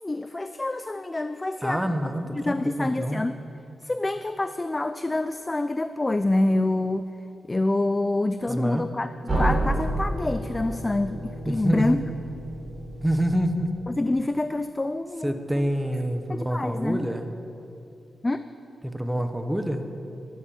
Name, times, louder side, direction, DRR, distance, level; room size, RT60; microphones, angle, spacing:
voice 1, 0.0-1.9 2.4-3.3 3.8-7.1 7.4-9.1 9.4-12.0 13.9-15.7 16.3-17.0 18.2-18.4, left 2 dB, 20° left, 11 dB, 0.4 m, -26 dB
voice 2, 1.6-3.2 8.5-8.9 11.4-12.0 13.0-13.7 15.2-17.3 18.8-19.9, equal, 5° right, 7 dB, 0.9 m, -27 dB
sound 1, 9.3-14.0, right 1 dB, 25° right, 3.8 m, -30 dB
11.5 x 11.5 x 7.1 m, 2.7 s
wide cardioid pair, 120°, 0 cm